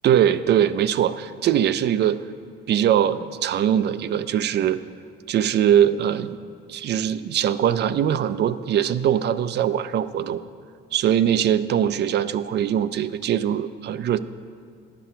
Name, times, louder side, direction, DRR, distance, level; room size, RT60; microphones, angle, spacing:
voice 1, 0.0-2.2 2.7-4.8 5.3-6.4 6.7-10.4 10.9-14.2, right 10 dB, 60° right, 13 dB, 0.4 m, -21 dB
11.0 x 6.1 x 5.6 m, 2.1 s
cardioid pair, 90°, 20 cm